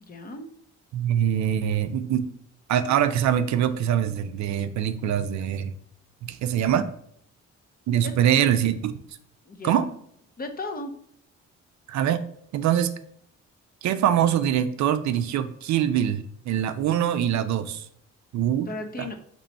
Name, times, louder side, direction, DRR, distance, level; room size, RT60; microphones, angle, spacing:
voice 1, 0.0-0.5 8.0-8.1 9.5-9.8 10.4-10.9 18.7-19.2, left 2 dB, 30° left, 6 dB, 0.7 m, -35 dB
voice 2, 0.9-2.3 2.7-5.7 6.2-6.9 7.9-8.9 9.6-9.8 11.9-12.2 12.5-12.9 13.8-17.8 18.3-18.7 19.0-19.2, right 10 dB, 65° right, 10 dB, 0.5 m, -23 dB
3.9 x 3.1 x 4.3 m, 0.64 s
cardioid pair, 90°, 30 cm